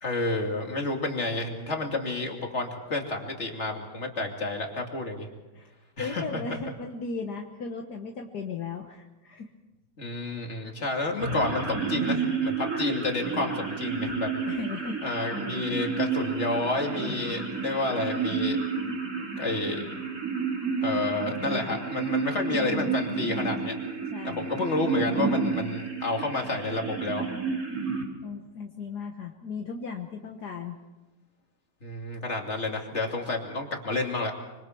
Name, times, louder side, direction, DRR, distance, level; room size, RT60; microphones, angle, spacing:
voice 1, 0.0-5.3 6.0-6.6 10.0-14.3 15.0-18.6 19.4-19.8 20.8-23.7 24.3-27.2 31.8-34.3, left 2 dB, 40° left, 2 dB, 3.0 m, -30 dB
voice 2, 6.0-9.5 10.5-10.7 14.0-14.2 14.5-15.0 22.5-23.0 24.1-24.5 28.2-30.8, left 4 dB, 70° left, 2 dB, 1.9 m, -36 dB
sound 1, 11.2-28.1, right 4 dB, 55° right, 4.3 m, -31 dB
25.5 x 25.0 x 4.6 m, 1.1 s
omnidirectional pair, 1.9 m